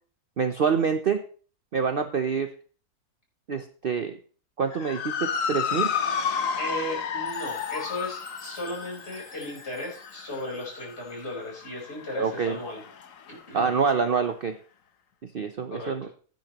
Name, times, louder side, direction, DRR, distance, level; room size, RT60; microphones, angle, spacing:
voice 1, 0.4-1.2 1.7-2.5 3.5-4.2 4.6-5.9 12.2-12.6 13.5-14.6 15.2-16.1, right 6 dB, 50° right, 7 dB, 0.7 m, -26 dB
Motor vehicle (road) / Siren, 4.7-13.3, left 7 dB, 60° left, 1.3 m, -32 dB
voice 2, 6.6-12.8 13.3-13.7 15.7-15.9, left 1 dB, 45° left, -2 dB, 4.5 m, -36 dB
Chime, 7.3-11.5, right 1 dB, 15° right, 2.0 m, -52 dB
16.0 x 9.4 x 3.0 m, 0.41 s
omnidirectional pair, 1.6 m